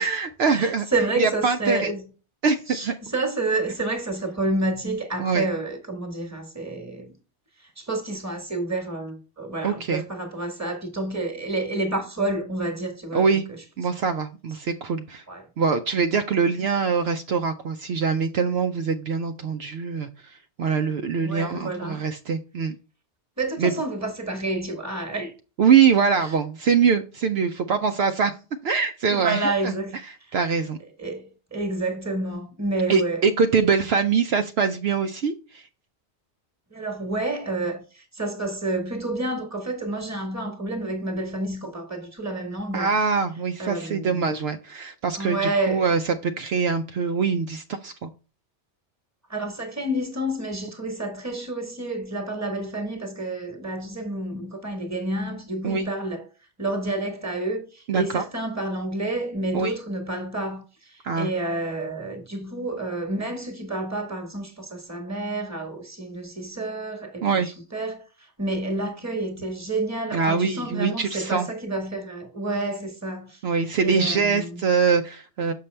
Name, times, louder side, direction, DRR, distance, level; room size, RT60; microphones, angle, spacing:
voice 1, 0.0-0.9 1.2-1.9 2.4-2.9 5.2-5.5 9.6-10.0 13.1-13.5 13.8-15.2 15.6-22.8 23.6-23.7 25.6-28.3 28.6-29.7 30.1-30.8 32.9-35.7 42.7-48.1 55.6-55.9 57.9-58.2 59.5-59.7 61.0-61.3 67.2-67.5 70.1-71.5 73.4-75.5, right 5 dB, 70° right, 0.8 m, -23 dB
voice 2, 0.5-2.1 2.7-7.2 7.6-13.2 15.3-15.5 20.7-20.8 21.2-22.0 23.4-25.3 29.1-30.0 30.3-30.4 30.6-30.7 31.0-33.2 33.5-33.7 36.7-42.9 43.6-44.3 45.1-45.9 49.3-56.2 56.6-67.4 67.7-73.4 73.8-74.6, right 2 dB, 15° right, 1.3 m, -29 dB
6.6 x 5.5 x 3.2 m
omnidirectional pair, 1.1 m